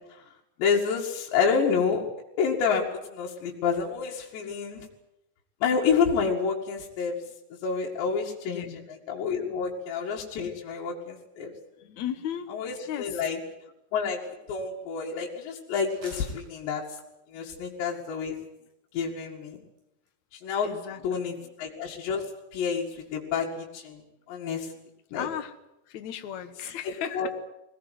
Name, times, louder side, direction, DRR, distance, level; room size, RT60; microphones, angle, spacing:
voice 1, 0.6-2.0 2.4-4.9 5.6-7.2 7.5-8.7 9.1-11.5 12.5-13.4 13.9-14.2 14.5-16.8 17.3-18.4 18.9-19.6 20.3-20.7 21.0-22.3 22.5-22.9 23.1-24.0 24.3-24.7 25.1-25.3 27.1-27.3, left 6 dB, 80° left, -3 dB, 4.4 m, -28 dB
voice 2, 8.5-8.9 9.6-9.8 11.8-13.3 19.0-19.1 20.6-21.5 25.1-25.5 25.9-27.3, left 9 dB, 65° left, 9 dB, 1.9 m, -36 dB
sound 1, 14.4-14.5 14.9-15.0 15.9-17.3 17.9-18.9 19.2-19.3 19.5-19.8 20.1-20.2 20.4-20.5, right 2 dB, 50° right, 7.7 m, -51 dB
21.5 x 18.5 x 9.4 m, 0.90 s
omnidirectional pair, 4.9 m